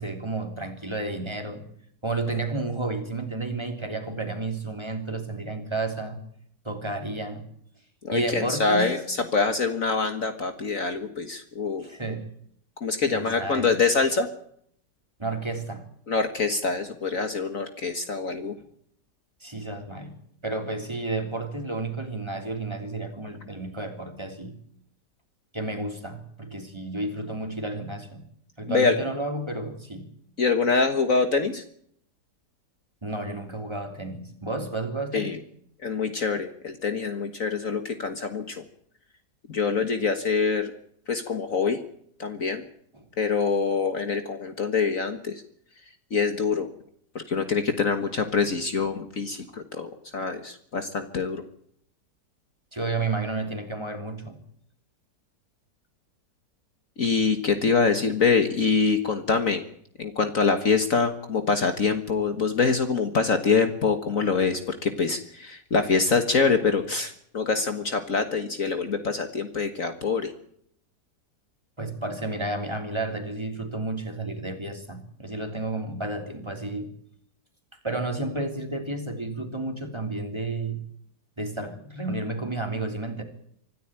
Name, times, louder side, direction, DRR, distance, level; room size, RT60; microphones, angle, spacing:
voice 1, 0.0-1.6 2.0-6.2 6.6-7.5 8.1-8.9 11.8-12.3 13.1-13.7 15.2-15.8 19.4-20.2 20.4-24.6 25.5-28.2 28.6-30.1 33.0-35.3 42.9-43.1 52.7-54.4 71.8-76.9 77.7-80.8 81.4-83.2, right 2 dB, 15° right, 4 dB, 3.3 m, -31 dB
voice 2, 8.0-11.9 12.8-14.3 16.1-18.5 28.7-29.0 30.4-31.6 35.1-35.4 35.8-38.6 39.5-40.7 41.1-41.8 42.2-42.6 43.2-45.4 46.1-46.7 47.2-51.4 57.0-59.6 60.0-70.3, left 4 dB, 50° left, 8 dB, 1.8 m, -25 dB
25.5 x 13.5 x 8.9 m, 0.66 s
omnidirectional pair, 1.9 m